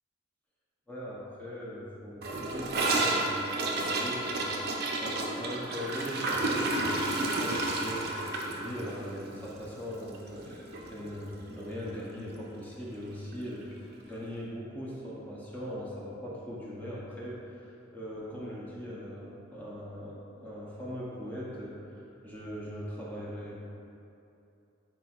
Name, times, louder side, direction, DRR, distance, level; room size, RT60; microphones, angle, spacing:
voice 1, 0.9-23.5, equal, 10° left, -7 dB, 0.5 m, -40 dB
Gurgling / Toilet flush, 2.2-10.5 10.7-10.9 11.2-11.6 11.9-12.0 12.3-12.4 13.3-13.4, right 2 dB, 55° right, 0.5 m, -31 dB
4.2 x 4.2 x 2.3 m, 2.8 s
head